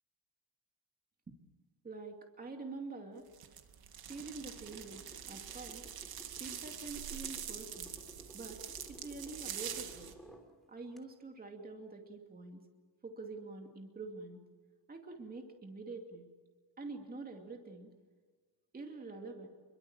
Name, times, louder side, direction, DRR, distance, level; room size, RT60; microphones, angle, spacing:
voice 1, 1.8-3.3 4.1-5.9 6.4-7.9 8.3-8.6 8.9-10.1 10.7-12.6 13.0-14.4 14.9-16.3 16.8-17.9 18.7-19.5, right 3 dB, 20° right, 3 dB, 2.6 m, -46 dB
sound 1, 3.3-10.1, right 9 dB, 60° right, 2.4 m, -45 dB
sound 2, 4.6-10.5 11.0-11.1, equal, ahead, 3.3 m, -56 dB
28.5 x 23.0 x 7.3 m, 1.4 s
cardioid pair, 155°, 41 cm